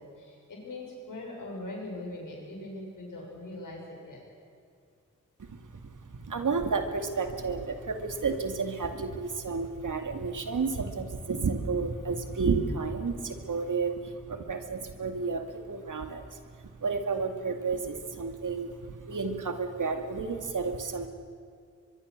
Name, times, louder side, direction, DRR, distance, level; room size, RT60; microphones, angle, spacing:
voice 1, 0.0-4.2, left 2 dB, 85° left, -2 dB, 7.2 m, -41 dB
voice 2, 6.1-16.3 16.8-21.1, right 4 dB, 75° right, 6 dB, 2.3 m, -31 dB
23.0 x 23.0 x 6.6 m, 2.3 s
cardioid pair, 40°, 31 cm